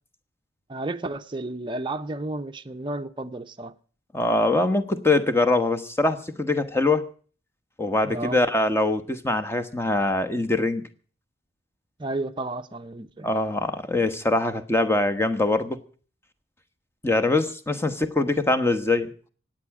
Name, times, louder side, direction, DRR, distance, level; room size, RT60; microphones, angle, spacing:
voice 1, 0.7-3.8 8.0-8.4 12.0-13.3, right 2 dB, 25° right, 0.7 m, -32 dB
voice 2, 4.1-7.1 7.8-10.8 13.2-15.8 17.0-19.1, left 2 dB, 10° left, 1.1 m, -23 dB
25.0 x 9.1 x 4.8 m
head